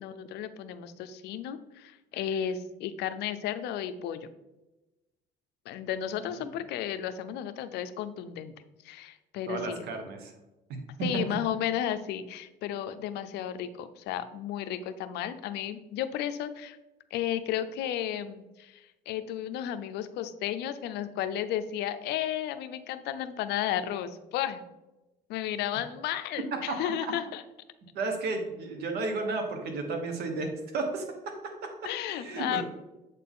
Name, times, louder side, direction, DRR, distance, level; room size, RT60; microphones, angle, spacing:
voice 1, 0.0-4.2 5.7-8.5 8.8-9.9 11.0-16.8 17.1-24.6 25.3-27.4 31.8-32.6, left 10 dB, 80° left, 11 dB, 0.6 m, -33 dB
voice 2, 6.2-6.6 9.5-10.3 26.5-26.7 27.0-27.1 27.9-32.6, right 3 dB, 70° right, 4 dB, 1.4 m, -33 dB
7.7 x 4.1 x 3.7 m, 1.0 s
cardioid pair, 110°, 17 cm